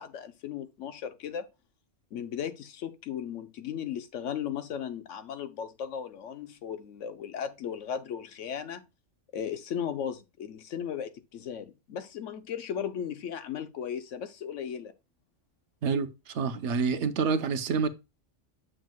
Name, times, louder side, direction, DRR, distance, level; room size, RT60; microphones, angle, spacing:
voice 1, 0.0-1.5 2.1-8.8 9.3-14.9, left 8 dB, 80° left, 1.1 m, -36 dB
voice 2, 15.8-17.9, right 5 dB, 70° right, 1.1 m, -28 dB
7.8 x 6.4 x 2.3 m
omnidirectional pair, 1.2 m